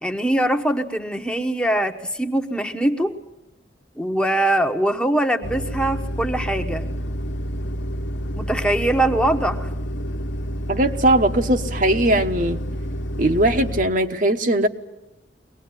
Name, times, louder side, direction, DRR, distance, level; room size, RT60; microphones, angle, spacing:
voice 1, 0.0-3.1 4.0-6.9 8.4-9.7, right 1 dB, 5° left, 5 dB, 1.1 m, -22 dB
sound 1, 5.4-13.9, equal, 80° left, 1.2 m, -29 dB
voice 2, 10.7-12.6 13.2-14.7, right 1 dB, 45° right, 6 dB, 1.2 m, -19 dB
23.5 x 19.0 x 9.8 m, 0.93 s
head